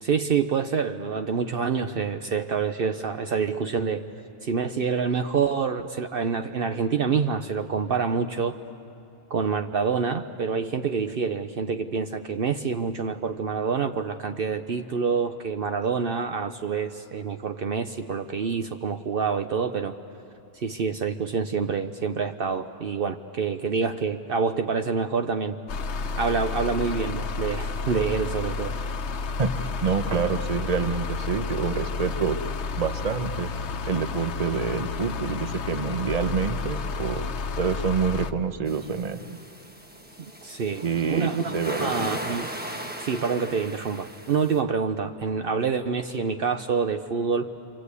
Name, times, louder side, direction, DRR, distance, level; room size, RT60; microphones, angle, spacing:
voice 1, 0.0-4.1 4.4-8.6 9.3-19.9 20.5-25.6 26.2-28.7 40.2-42.5 43.0-47.5, right 5 dB, 60° right, 7 dB, 0.9 m, -27 dB
sound 1, 25.7-38.3, left 4 dB, 90° left, 1.1 m, -31 dB
voice 2, 29.4-32.4 32.8-33.5 33.9-37.2 37.6-39.4 40.8-42.0, right 5 dB, 40° right, 9 dB, 1.0 m, -27 dB
sound 2, 38.7-44.6, equal, 10° right, 1.3 m, -37 dB
29.0 x 24.5 x 8.3 m, 2.9 s
omnidirectional pair, 1.1 m